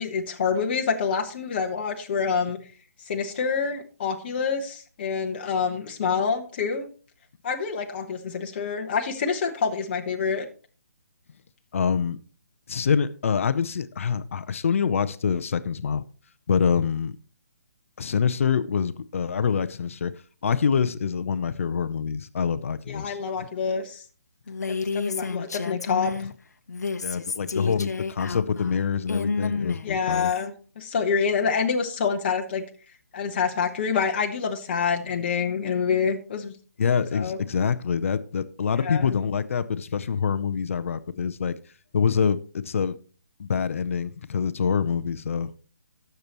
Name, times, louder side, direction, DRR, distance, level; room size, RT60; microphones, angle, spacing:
voice 1, 0.0-2.6 3.1-6.9 7.4-10.5 22.9-24.0 24.7-26.1 29.8-32.6 33.1-36.5 37.1-37.4 38.8-39.1, left 6 dB, 40° left, 1.2 m, -27 dB
voice 2, 11.7-12.2 12.7-16.0 16.5-17.2 18.0-20.1 20.4-23.5 27.0-30.3 36.8-41.6 41.9-43.0 43.4-45.5, left 6 dB, 55° left, 0.6 m, -25 dB
Female speech woman speaking, 24.5-26.3 26.7-30.4, left 4 dB, 85° left, 0.8 m, -30 dB
18.0 x 6.8 x 3.0 m
hypercardioid pair, 160°, 9 cm